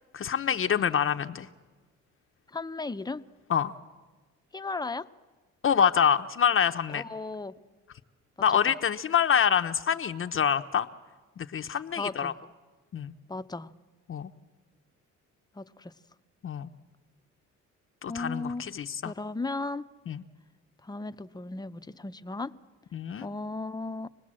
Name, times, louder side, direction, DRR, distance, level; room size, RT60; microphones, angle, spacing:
voice 1, 0.1-1.5 3.5-3.7 5.6-7.0 8.4-10.9 11.4-12.3 12.9-13.1 14.1-14.3 16.4-16.7 18.0-19.1 20.1-20.2 22.9-23.3, left 8 dB, 45° left, 8 dB, 0.8 m, -26 dB
voice 2, 2.5-3.2 4.5-5.1 6.9-7.6 8.7-8.8 11.6-12.4 13.3-13.7 15.5-15.9 18.1-18.7 19.0-19.8 20.8-22.5 23.2-24.1, left 3 dB, 15° left, 11 dB, 0.7 m, -36 dB
26.5 x 19.0 x 7.6 m, 1.3 s
cardioid pair, 90°, 30 cm